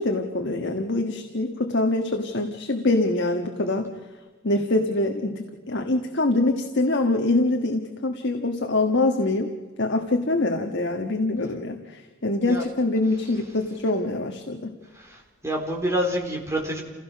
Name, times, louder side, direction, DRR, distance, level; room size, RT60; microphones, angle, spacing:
voice 1, 0.0-3.9 4.4-9.5 9.8-14.7, left 2 dB, 55° left, 3 dB, 1.5 m, -24 dB
voice 2, 14.9-16.8, equal, 15° right, -1 dB, 4.0 m, -27 dB
28.5 x 16.5 x 6.2 m, 1.3 s
head